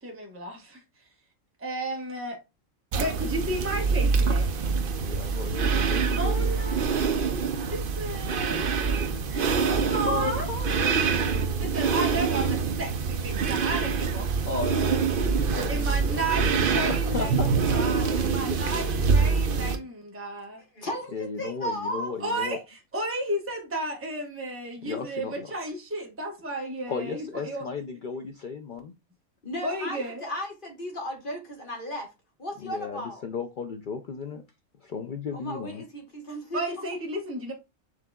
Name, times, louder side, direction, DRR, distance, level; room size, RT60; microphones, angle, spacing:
voice 1, 0.0-0.8 1.6-2.4 2.9-4.5 6.1-8.7 9.3-10.5 11.6-14.6 15.7-20.6 22.2-27.7 29.6-30.2 36.5-37.5, right 1 dB, 10° right, 1.0 m, -33 dB
sound 1, 2.9-19.8, right 5 dB, 55° right, 0.6 m, -25 dB
voice 2, 5.0-6.6 9.9-11.9 14.4-16.5 16.7-18.4 18.7-18.9 21.1-22.6 24.8-25.5 26.9-28.9 32.6-34.4 34.8-35.8, left 5 dB, 75° left, 0.4 m, -35 dB
voice 3, 20.7-22.1 29.4-32.1 32.4-33.2 35.3-36.6, equal, 40° left, 1.3 m, -35 dB
6.4 x 3.7 x 2.2 m
omnidirectional pair, 1.4 m